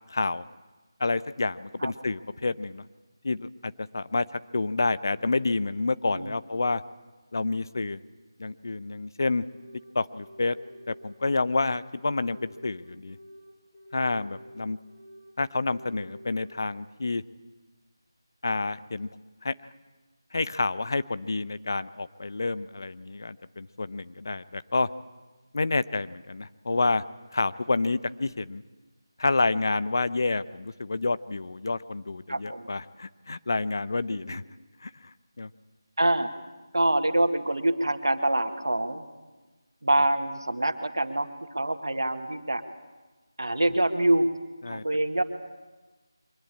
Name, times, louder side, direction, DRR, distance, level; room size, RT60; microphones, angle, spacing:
voice 1, 0.1-0.5 1.0-2.8 3.2-4.2 4.5-6.8 7.3-8.0 8.4-9.4 9.9-10.6 10.9-13.2 13.9-14.8 15.4-17.2 18.4-19.1 19.4-19.5 20.3-24.9 25.5-27.0 27.3-28.6 29.2-34.4 34.8-34.9 35.4-35.5 44.6-44.8, left 3 dB, 50° left, 15 dB, 0.8 m, -28 dB
voice 2, 6.1-6.4 32.3-32.7 34.1-34.4 36.0-36.3 36.7-39.0 39.8-41.3 41.5-42.6 43.4-44.3 44.7-45.2, right 1 dB, 70° right, 7 dB, 2.0 m, -25 dB
sound 1, 9.5-9.8 10.1-11.6 11.9-13.4 13.7-15.2 15.5-16.5, equal, 10° left, 7.4 m, -49 dB
24.0 x 20.0 x 8.5 m, 1.2 s
figure-of-eight pair, 160°, 2 cm